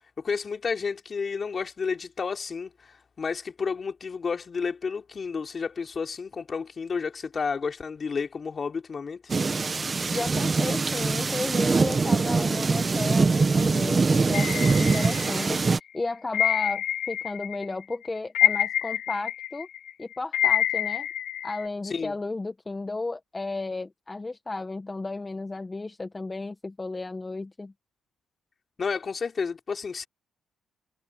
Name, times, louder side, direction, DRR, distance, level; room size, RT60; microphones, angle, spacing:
voice 1, 0.2-9.2 21.8-22.2 28.8-30.1, left 5 dB, 40° left, 3.9 m, -31 dB
sound 1, 9.3-15.8, right 4 dB, 30° right, 1.6 m, -23 dB
voice 2, 10.1-15.6 15.9-19.7 20.0-21.1 21.4-27.7, left 3 dB, 20° left, 1.4 m, -33 dB
sound 2, 14.3-15.6 16.3-17.6 17.9-21.7, left 11 dB, 75° left, 2.0 m, -27 dB
cardioid pair, 90°, 0 cm